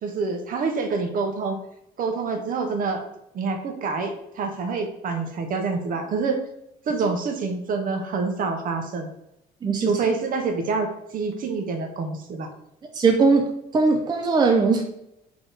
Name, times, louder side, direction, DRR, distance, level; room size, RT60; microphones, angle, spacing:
voice 1, 0.0-1.6 2.0-3.0 3.3-6.4 6.9-9.1 9.8-12.5, right 4 dB, 55° right, 5 dB, 0.9 m, -27 dB
voice 2, 9.6-9.9 12.9-14.8, right 4 dB, 25° right, 3 dB, 0.4 m, -20 dB
4.0 x 2.9 x 3.8 m, 0.81 s
cardioid pair, 110°, 17 cm